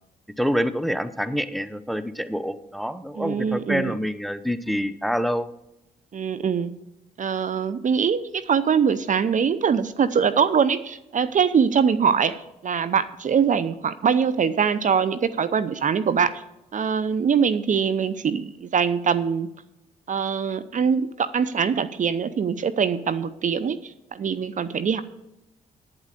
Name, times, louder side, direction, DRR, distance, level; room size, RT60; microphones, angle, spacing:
voice 1, 0.4-5.5, equal, ahead, 13 dB, 0.8 m, -26 dB
voice 2, 3.2-3.9 6.1-6.7 7.2-16.4 16.7-19.5 20.1-25.0, right 6 dB, 45° right, 14 dB, 0.6 m, -23 dB
8.7 x 8.1 x 6.6 m, 0.88 s
hypercardioid pair, 50°, 18 cm